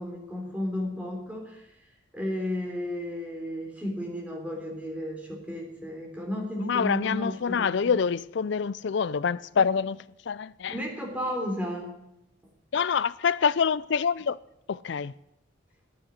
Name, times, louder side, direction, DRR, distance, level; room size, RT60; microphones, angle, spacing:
voice 1, 0.0-1.7 2.1-8.0 10.7-12.0, left 1 dB, 5° right, 3.4 m, -33 dB
voice 2, 6.6-10.7 12.7-14.4 14.7-15.1, left 6 dB, 60° left, 0.4 m, -26 dB
10.0 x 9.5 x 10.0 m
head